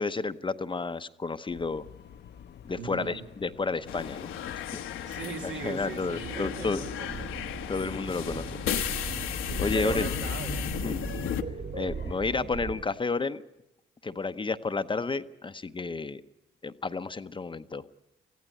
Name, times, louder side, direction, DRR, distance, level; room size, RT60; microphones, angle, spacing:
voice 1, 0.0-1.8 2.6-4.3 4.7-4.8 5.4-6.8 7.7-8.6 9.6-10.1 10.8-11.0 11.7-13.4 14.0-16.2 16.6-17.9, left 4 dB, 25° left, 10 dB, 0.8 m, -31 dB
sound 1, 1.5-12.6, left 8 dB, 60° left, 0.8 m, -50 dB
voice 2, 2.8-3.3 5.1-7.4 9.4-11.2, right 6 dB, 70° right, 3 dB, 2.2 m, -40 dB
sound 2, 3.9-11.4, left 9 dB, 80° left, 1.2 m, -34 dB
sound 3, 5.8-12.8, right 5 dB, 55° right, 2.9 m, -39 dB
19.0 x 15.0 x 9.8 m, 0.90 s
cardioid pair, 90°, 20 cm